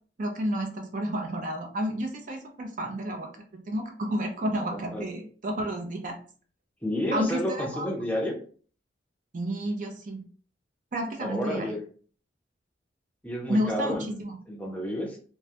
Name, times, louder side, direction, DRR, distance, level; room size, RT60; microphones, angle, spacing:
voice 1, 0.2-6.2 7.1-7.9 8.1-8.2 9.3-10.2 10.9-11.8 13.5-14.4, right 1 dB, 45° right, 3 dB, 0.5 m, -31 dB
voice 2, 4.7-5.0 6.8-8.4 11.2-11.8 13.2-15.2, left 1 dB, 10° left, -1 dB, 0.5 m, -31 dB
2.2 x 2.0 x 2.8 m, 0.43 s
head